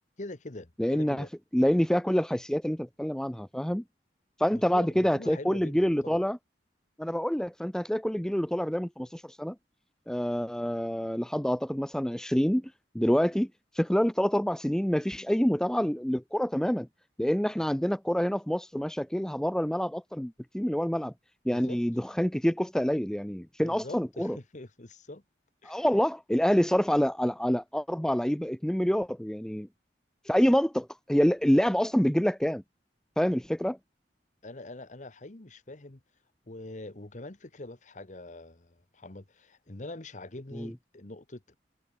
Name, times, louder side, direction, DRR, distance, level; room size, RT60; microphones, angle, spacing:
voice 1, 0.2-1.3 4.5-6.2 21.5-21.8 23.6-25.2 25.6-25.8 34.4-36.0 36.5-41.6, left 2 dB, 45° left, 1.3 m, -44 dB
voice 2, 0.8-1.2 1.5-3.8 4.4-6.4 7.0-9.6 10.1-13.5 13.7-16.9 17.2-21.1 21.5-24.4 25.6-29.7 30.3-32.6 33.2-33.8 40.5-40.7, equal, 5° left, 0.5 m, -27 dB
head